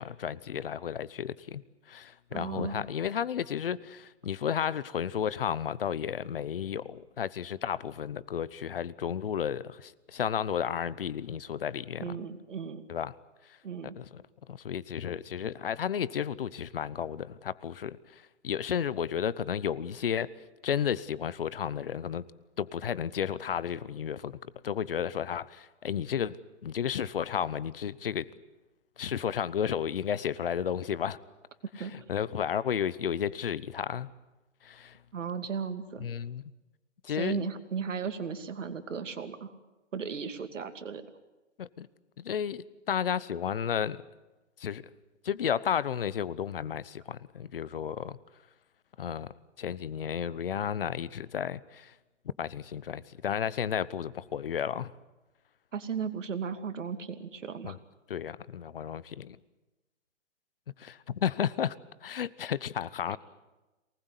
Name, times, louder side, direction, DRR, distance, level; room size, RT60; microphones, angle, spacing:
voice 1, 0.0-1.6 1.9-12.1 12.9-13.1 13.9-14.2 14.5-20.3 20.6-22.2 22.6-24.4 24.6-28.3 29.0-31.2 31.8-34.1 34.6-35.0 36.0-36.4 37.0-37.4 41.6-41.9 42.2-44.0 44.6-44.9 45.2-48.2 49.0-51.9 52.4-54.9 57.6-57.8 58.1-59.4 60.8-61.8 62.0-63.2, left 8 dB, 50° left, 19 dB, 0.8 m, -33 dB
voice 2, 2.3-2.8 12.0-12.8 13.6-14.0 31.8-31.9 35.1-36.1 37.2-39.5 39.9-41.0 55.7-57.8 63.1-63.2, right 6 dB, 90° right, 8 dB, 2.7 m, -35 dB
24.0 x 19.5 x 8.2 m, 1.1 s
hypercardioid pair, 175°, 36 cm